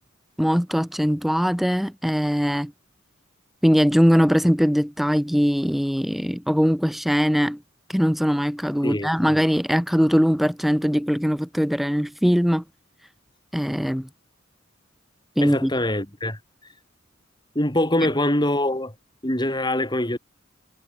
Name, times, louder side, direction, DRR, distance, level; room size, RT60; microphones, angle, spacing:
voice 1, 0.4-2.7 3.6-7.6 7.9-12.6 13.5-14.1 15.4-15.7, equal, ahead, 0.8 m, -21 dB
voice 2, 8.8-9.4 15.4-16.4 17.6-18.9 19.2-20.2, left 1 dB, 20° left, 5.2 m, -24 dB
head